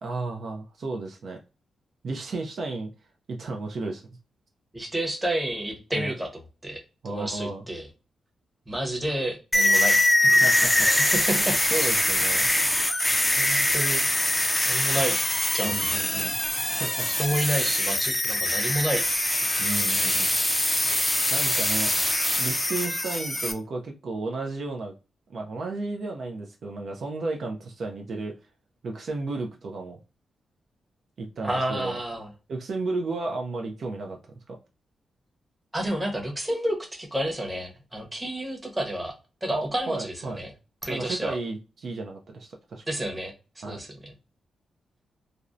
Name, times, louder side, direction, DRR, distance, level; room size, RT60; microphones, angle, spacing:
voice 1, 0.0-1.4 2.0-2.9 3.3-4.0 5.9-6.1 7.0-7.6 10.4-10.9 11.3-12.5 15.6-16.3 16.8-17.1 19.6-20.3 21.3-22.0 22.4-24.9 25.3-28.4 28.8-30.0 31.2-32.0 32.5-34.2 34.5-34.6 39.5-40.4 40.9-42.8 43.6-43.8, right 3 dB, 60° right, 1 dB, 0.4 m, -33 dB
voice 2, 4.7-6.8 7.1-7.9 8.7-10.4 10.8-11.9 13.4-14.0 14.7-15.2 15.5-15.9 17.2-19.0 19.4-19.5 31.4-32.3 35.7-39.1 39.4-40.5 40.8-41.4 42.9-43.3 43.6-44.1, right 1 dB, 15° right, 1 dB, 0.8 m, -30 dB
sound 1, 9.5-23.5, left 1 dB, 10° left, 0.4 m, -23 dB
2.5 x 2.1 x 2.4 m, 0.31 s
cardioid pair, 85°, 0 cm